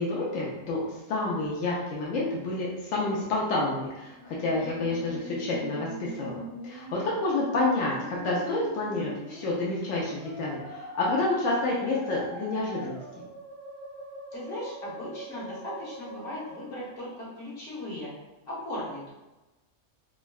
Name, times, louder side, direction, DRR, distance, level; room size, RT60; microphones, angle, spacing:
voice 1, 0.0-13.0, left 2 dB, 90° left, -5 dB, 1.0 m, -29 dB
Musical instrument, 4.1-17.1, right 1 dB, 65° right, 1.0 m, -43 dB
voice 2, 14.3-18.1 18.5-19.1, left 1 dB, 55° left, -8 dB, 1.4 m, -37 dB
3.6 x 2.1 x 2.3 m, 1.1 s
omnidirectional pair, 1.3 m